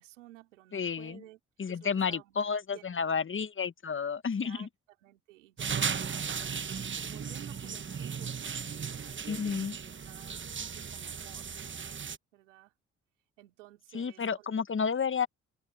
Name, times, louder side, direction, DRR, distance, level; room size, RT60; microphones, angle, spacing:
voice 1, 0.0-1.4 1.7-2.4 2.7-3.3 4.4-4.7 5.0-6.7 7.0-11.5 12.3-12.7 13.4-14.5, right 16 dB, 90° right, 3.4 m, -54 dB
voice 2, 0.7-1.2 1.6-4.7 9.3-9.7 13.9-15.3, left 6 dB, 35° left, 1.3 m, -31 dB
sound 1, 5.6-12.2, right 6 dB, 30° right, 1.1 m, -36 dB
open air
hypercardioid pair, 45°, 36 cm